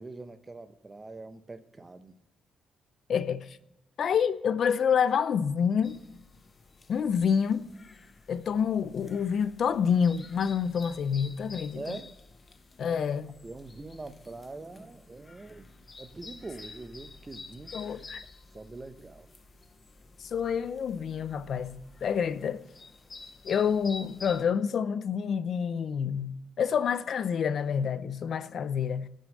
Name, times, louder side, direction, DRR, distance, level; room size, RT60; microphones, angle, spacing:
voice 1, 0.0-2.2 11.7-12.1 12.8-13.0 13.4-15.7 16.0-17.8 18.5-19.3, right 3 dB, 25° right, 0.8 m, -43 dB
voice 2, 3.1-3.6 4.0-6.0 6.9-7.7 8.3-11.8 12.8-13.3 17.7-18.2 20.2-22.6 23.4-29.1, left 7 dB, 60° left, 0.5 m, -28 dB
sound 1, 5.8-24.4, left 3 dB, 30° left, 0.7 m, -50 dB
11.0 x 6.4 x 6.5 m
cardioid pair, 90°, 0 cm